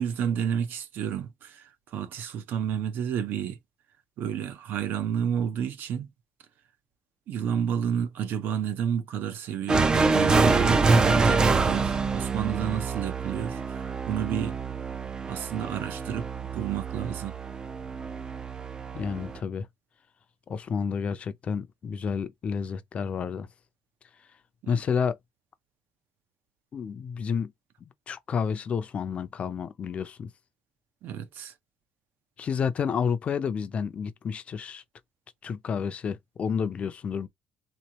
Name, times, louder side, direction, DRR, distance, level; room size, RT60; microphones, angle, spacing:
voice 1, 0.0-3.6 4.2-6.1 7.3-14.5 15.3-17.4 24.6-24.8 31.0-31.5, right 8 dB, 60° right, 0.7 m, -31 dB
sound 1, 9.7-19.4, right 4 dB, 20° right, 0.4 m, -26 dB
voice 2, 18.9-19.7 20.5-23.5 24.7-25.2 26.7-27.5 28.1-30.3 32.4-34.8 35.4-37.3, left 6 dB, 35° left, 0.5 m, -30 dB
3.7 x 3.0 x 2.8 m
cardioid pair, 160°, 4 cm